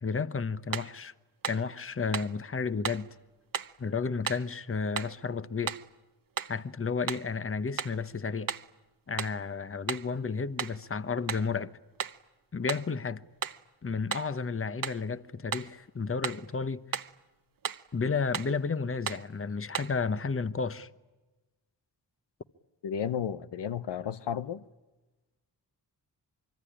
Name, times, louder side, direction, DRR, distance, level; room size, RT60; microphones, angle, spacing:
voice 1, 0.0-1.1 1.4-3.1 3.8-5.7 6.5-8.5 9.1-11.7 12.5-13.2 13.8-16.8 17.9-20.9, left 5 dB, 30° left, 1.0 m, -32 dB
sound 1, 0.7-1.0 1.4-1.7 2.1-2.4 2.8-3.1 3.5-3.8 4.3-4.5 5.0-5.2 5.7-5.9 6.4-6.6 7.1-7.3 7.8-8.0 8.5-8.7 9.2-9.4 9.9-10.1 10.6-10.8 11.3-11.5 12.0-12.2 12.7-12.9 13.4-13.6 14.1-14.3 14.8-15.1 15.5-15.7 16.2-16.5 16.9-17.2 17.6-17.9 18.3-18.6 19.1-19.3 19.7-20.0, right 7 dB, 55° right, 1.0 m, -35 dB
voice 2, 22.8-24.6, left 8 dB, 85° left, 1.0 m, -33 dB
25.0 x 24.0 x 10.0 m
cardioid pair, 70°, 41 cm